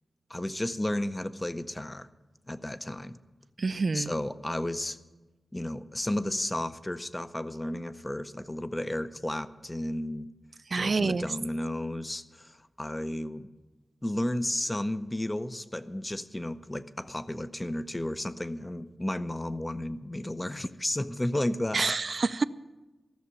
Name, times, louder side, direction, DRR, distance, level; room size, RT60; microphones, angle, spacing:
voice 1, 0.3-2.1 2.5-3.2 3.9-5.0 5.5-10.3 10.7-13.5 14.0-21.9, left 1 dB, 20° left, 12 dB, 0.6 m, -33 dB
voice 2, 3.6-4.1 10.7-11.3 21.7-22.4, right 4 dB, 55° right, 15 dB, 0.4 m, -27 dB
13.5 x 6.8 x 9.7 m, 1.2 s
wide cardioid pair, 105°, 0 cm